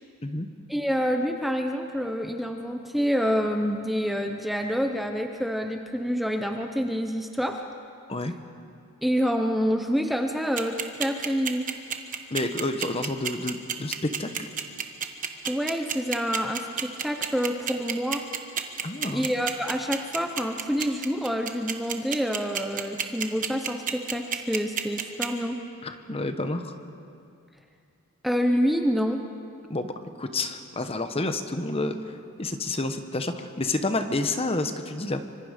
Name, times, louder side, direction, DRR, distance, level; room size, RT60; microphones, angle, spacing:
voice 1, 0.7-7.6 9.0-11.7 15.5-18.3 19.1-25.6 28.2-29.2, equal, ahead, 4 dB, 0.7 m, -27 dB
sound 1, 10.6-25.3, right 8 dB, 35° right, 1.2 m, -29 dB
voice 2, 12.3-14.5 18.8-19.3 25.8-26.7 29.7-35.2, left 2 dB, 25° left, 8 dB, 0.9 m, -29 dB
25.5 x 24.5 x 5.1 m, 2.5 s
head